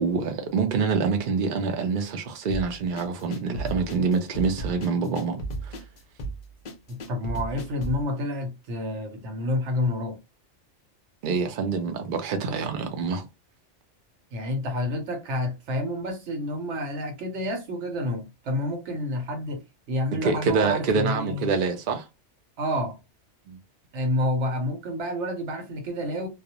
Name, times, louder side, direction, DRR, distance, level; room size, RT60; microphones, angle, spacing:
voice 1, 0.0-5.8 11.2-13.3 20.2-22.1 23.5-23.6, right 4 dB, 55° right, 0.6 m, -26 dB
sound 1, 2.5-8.0, right 2 dB, 55° left, 0.5 m, -35 dB
voice 2, 6.9-10.2 14.3-21.5 22.6-23.0 23.9-26.3, left 1 dB, 75° right, 1.1 m, -29 dB
2.4 x 2.0 x 2.8 m
omnidirectional pair, 1.2 m